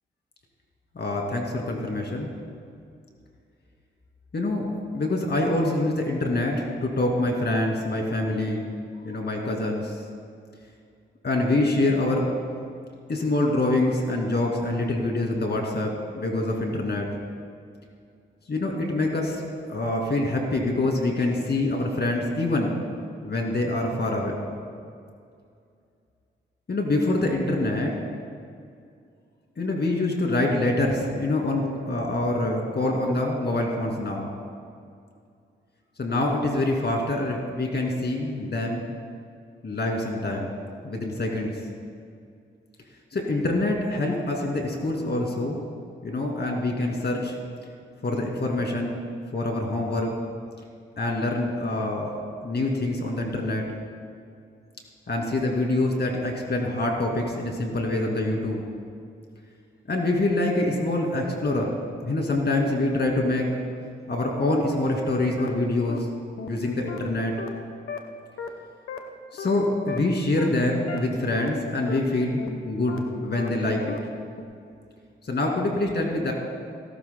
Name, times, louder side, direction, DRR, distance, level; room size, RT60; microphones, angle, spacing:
voice 1, 0.9-2.3 4.3-4.7 4.9-8.7 9.0-10.0 11.2-12.3 13.1-17.1 18.5-19.4 19.7-22.8 23.2-24.5 26.7-27.9 29.6-34.3 36.0-38.8 39.6-40.5 40.8-41.5 43.1-45.6 46.0-47.4 48.0-49.0 49.3-50.1 51.0-52.1 52.4-53.6 55.1-58.6 59.9-61.7 62.0-63.5 64.1-66.1 66.4-67.3 69.3-74.0 75.2-76.3, left 2 dB, 50° left, 1 dB, 2.5 m, -25 dB
sound 1, 65.4-65.5 65.9-66.0 66.4-66.5 66.9-67.0 67.4-67.5 67.9-68.0 68.4-68.5 68.9-69.0 69.4-69.5 69.9-70.0 70.4-70.5 70.9-71.0 71.4-71.5 71.9-72.0 72.4-72.5 72.9-73.0 73.4-73.5 73.9-74.0 74.4-74.5, left 7 dB, 80° left, 1.0 m, -34 dB
18.0 x 12.5 x 2.2 m, 2.3 s
supercardioid pair, 45°, 21 cm